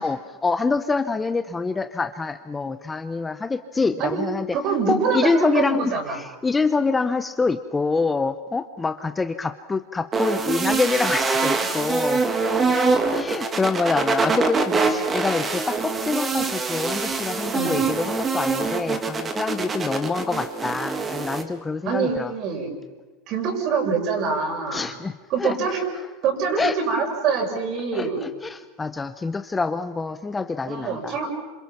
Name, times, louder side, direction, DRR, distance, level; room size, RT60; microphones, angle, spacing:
voice 1, 0.0-4.6 4.9-12.2 13.1-22.3 24.7-25.8 26.6-26.8 27.9-31.1, left 4 dB, 15° left, 10 dB, 0.7 m, -26 dB
voice 2, 4.5-6.2 14.8-14.9 17.5-17.9 21.8-22.7 23.3-24.9 25.3-25.8 26.2-28.2 30.7-31.3, right 5 dB, 45° right, 2 dB, 6.7 m, -25 dB
sound 1, 10.1-21.4, right 4 dB, 20° right, 2.2 m, -24 dB
27.0 x 27.0 x 6.0 m, 1.2 s
supercardioid pair, 140°, 0 cm